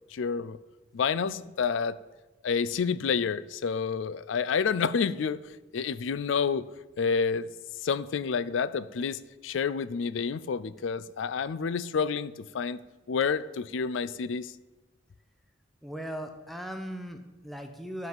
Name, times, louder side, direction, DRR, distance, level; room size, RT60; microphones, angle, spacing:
voice 1, 0.1-0.6 0.9-2.0 2.4-5.4 5.7-6.6 7.0-7.5 7.8-12.8 13.1-14.5, left 6 dB, 75° left, 16 dB, 0.4 m, -29 dB
voice 2, 15.8-18.1, equal, ahead, 5 dB, 0.7 m, -38 dB
10.0 x 5.4 x 7.7 m, 1.2 s
head